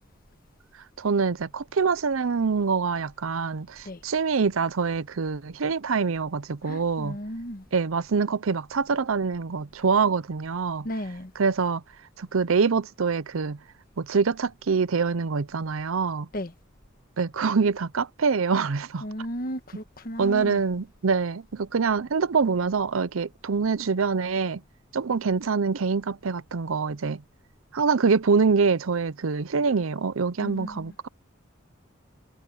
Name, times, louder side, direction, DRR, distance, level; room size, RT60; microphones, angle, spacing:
voice 1, 1.0-7.2 7.7-10.9 11.4-11.8 12.2-13.6 14.0-16.3 17.2-19.0 20.2-24.6 24.9-27.2 27.7-31.1, right 5 dB, 85° right, 0.6 m, -25 dB
voice 2, 6.6-7.6 10.8-11.3 16.3-16.5 19.0-20.6 30.4-30.9, equal, 45° left, 1.5 m, -35 dB
head